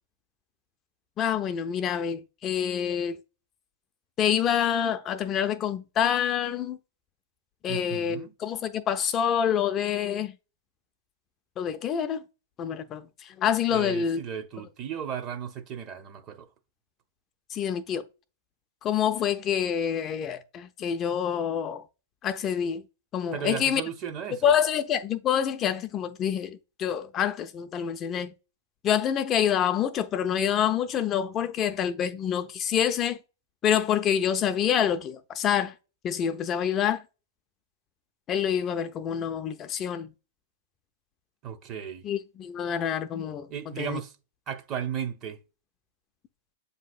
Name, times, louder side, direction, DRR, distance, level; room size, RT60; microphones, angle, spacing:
voice 1, 1.2-3.2 4.2-6.8 7.6-10.3 11.6-12.2 12.6-14.2 17.5-18.0 18.8-21.8 22.2-22.8 23.1-23.8 24.4-28.3 28.8-33.2 33.6-35.7 36.0-37.0 38.3-40.1 42.0-43.5 43.8-44.0, left 9 dB, 30° left, 0.3 m, -27 dB
voice 2, 7.7-8.3 13.7-16.5 23.3-24.5 41.4-42.1 43.5-44.2 44.5-45.4, right 8 dB, 35° right, 0.7 m, -35 dB
7.3 x 2.7 x 2.5 m
hypercardioid pair, 110°, 0 cm